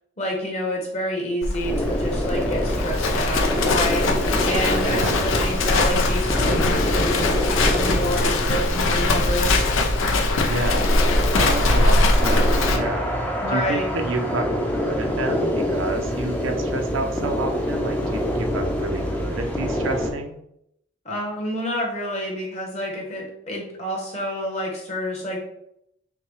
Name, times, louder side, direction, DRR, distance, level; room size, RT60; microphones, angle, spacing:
voice 1, 0.2-9.5 13.4-13.9 21.0-25.4, equal, 35° left, -2 dB, 1.1 m, -28 dB
Livestock farm animals working animals, 1.4-12.8, left 2 dB, 85° left, 0.5 m, -21 dB
sound 1, 1.6-20.1, equal, 10° left, 0.5 m, -26 dB
voice 2, 4.9-5.3 10.5-10.9 11.4-13.2 13.5-20.4, right 2 dB, 85° right, 4 dB, 0.6 m, -29 dB
5.7 x 2.2 x 3.2 m, 0.75 s
head